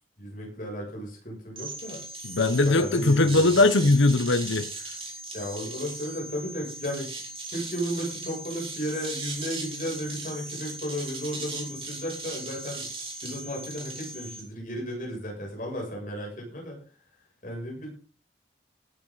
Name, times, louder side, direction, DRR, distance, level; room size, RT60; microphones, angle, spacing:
voice 1, 0.2-2.0 2.6-3.7 5.3-7.1 7.5-12.9 13.2-16.8 17.4-17.9, equal, 45° left, 7.6 m, -34 dB
sound 1, 1.6-14.4, right 2 dB, 30° right, 4.8 m, -38 dB
voice 2, 2.2-4.7, left 2 dB, 90° left, 1.0 m, -20 dB
17.5 x 11.0 x 4.1 m
head